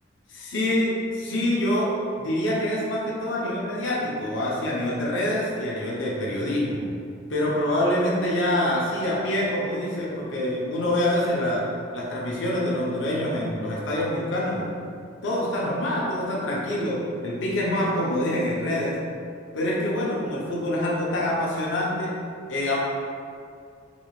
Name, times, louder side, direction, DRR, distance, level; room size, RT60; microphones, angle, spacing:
voice 1, 0.3-1.9 2.2-6.8 7.3-11.7 11.9-14.7 15.2-19.0 19.5-22.2 22.5-22.8, left 1 dB, 75° left, -4 dB, 0.7 m, -26 dB
3.9 x 2.4 x 3.1 m, 2.3 s
head